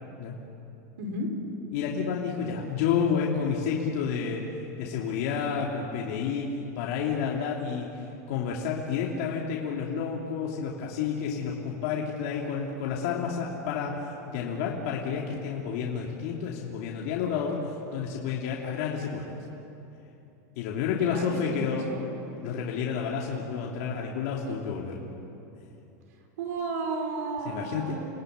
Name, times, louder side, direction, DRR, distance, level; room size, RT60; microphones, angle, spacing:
voice 1, 1.0-1.3 21.0-22.1 26.4-28.1, right 3 dB, 75° right, 4 dB, 5.3 m, -33 dB
voice 2, 1.7-4.4 4.8-19.4 20.5-21.9 22.4-25.0 27.4-28.1, left 6 dB, 55° left, -2 dB, 3.0 m, -30 dB
29.5 x 19.0 x 9.6 m, 2.9 s
supercardioid pair, 165°, 9 cm